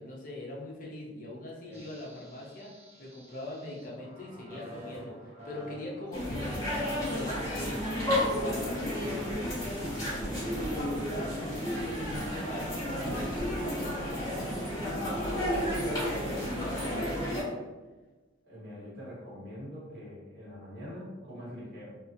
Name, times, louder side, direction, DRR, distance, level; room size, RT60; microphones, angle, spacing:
voice 1, 0.0-2.7 3.0-8.1 8.4-17.6, left 1 dB, 45° left, -3 dB, 0.5 m, -42 dB
sound 1, 1.7-14.3, equal, 35° right, 0.6 m, -50 dB
sound 2, 6.1-17.4, equal, 20° left, 1.0 m, -32 dB
voice 2, 18.4-22.0, equal, 55° right, -9 dB, 1.3 m, -44 dB
2.7 x 2.4 x 2.4 m, 1.2 s
head